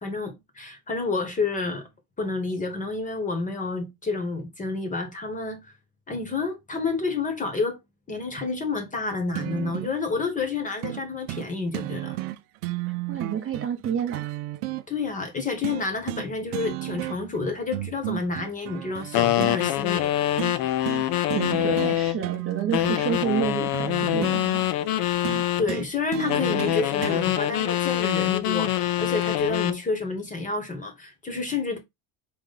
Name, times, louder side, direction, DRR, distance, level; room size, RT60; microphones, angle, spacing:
voice 1, 0.0-1.8 2.2-5.6 6.1-7.8 8.1-12.1 14.9-20.1 25.6-31.8, left 4 dB, 15° left, 1.1 m, -29 dB
sound 1, 9.3-10.0 10.8-11.0 11.3-11.5 11.7-14.8 15.6-16.3 16.5-17.4 17.7-19.6 20.4-20.6 20.8-21.0 21.3-21.9 22.2-24.4 25.2-27.2 28.2-28.3, right 17 dB, 85° right, 0.6 m, -33 dB
voice 2, 13.1-14.3 21.3-24.7, right 8 dB, 30° right, 0.8 m, -29 dB
sound 2, 19.1-22.2 22.7-25.7 26.3-29.8, left 13 dB, 50° left, 0.6 m, -25 dB
3.9 x 2.9 x 3.9 m
supercardioid pair, 135°, 44 cm